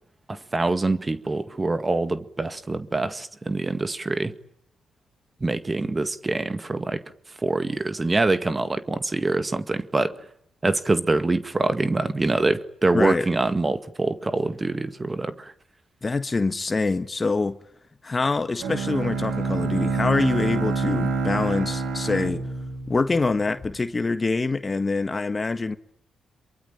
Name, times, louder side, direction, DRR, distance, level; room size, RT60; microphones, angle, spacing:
voice 1, 0.3-4.3 5.4-7.0 7.4-10.2 10.6-15.5, right 2 dB, 30° right, 1.9 m, -25 dB
voice 2, 12.9-13.3 16.0-17.6 18.0-22.4 22.9-25.8, left 3 dB, 35° left, 1.6 m, -25 dB
Bowed string instrument, 18.6-23.6, right 4 dB, 75° right, 3.7 m, -27 dB
27.0 x 23.0 x 9.1 m
supercardioid pair, 50°, 0 cm